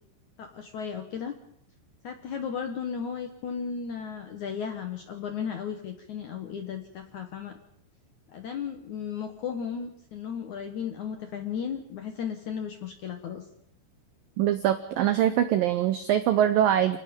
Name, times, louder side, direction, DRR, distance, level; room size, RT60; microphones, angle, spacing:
voice 1, 0.4-1.3 2.0-7.6 8.3-13.5, left 7 dB, 65° left, 6 dB, 1.9 m, -35 dB
voice 2, 14.4-17.0, right 11 dB, 90° right, 11 dB, 2.0 m, -23 dB
29.5 x 18.5 x 5.3 m, 0.69 s
omnidirectional pair, 5.4 m